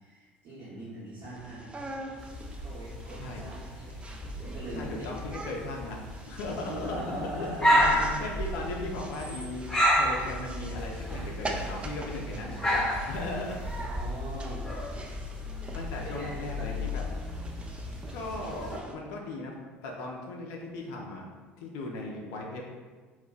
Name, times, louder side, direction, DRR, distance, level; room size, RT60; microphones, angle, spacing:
voice 1, 0.0-1.9 2.6-4.0 4.4-5.1 6.6-8.2 13.5-14.7 15.0-15.6 15.9-16.8, right 1 dB, 50° right, -12 dB, 0.9 m, -41 dB
sound 1, 1.2-18.9, right 2 dB, 15° right, 0.3 m, -43 dB
Dog Barking, 2.2-18.8, equal, 10° left, 0.8 m, -32 dB
voice 2, 4.7-7.5 8.2-13.6 15.7-17.0 18.1-21.2 21.6-22.7, left 2 dB, 60° left, -1 dB, 0.4 m, -38 dB
2.2 x 2.1 x 3.8 m, 1.4 s
figure-of-eight pair, 60°, 6 cm